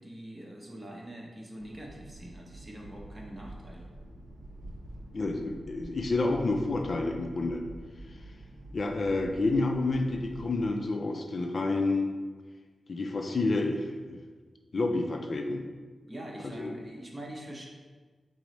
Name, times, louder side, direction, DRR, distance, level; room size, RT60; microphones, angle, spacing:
voice 1, 0.0-3.9 16.1-17.6, right 1 dB, 25° right, -1 dB, 0.7 m, -44 dB
sound 1, 1.6-10.6, right 1 dB, 80° right, 0.4 m, -47 dB
voice 2, 5.1-7.6 8.7-12.1 12.9-14.2 14.7-15.6 16.6-16.7, left 2 dB, 55° left, 3 dB, 0.4 m, -29 dB
4.6 x 2.0 x 4.0 m, 1.4 s
cardioid pair, 75°, 0 cm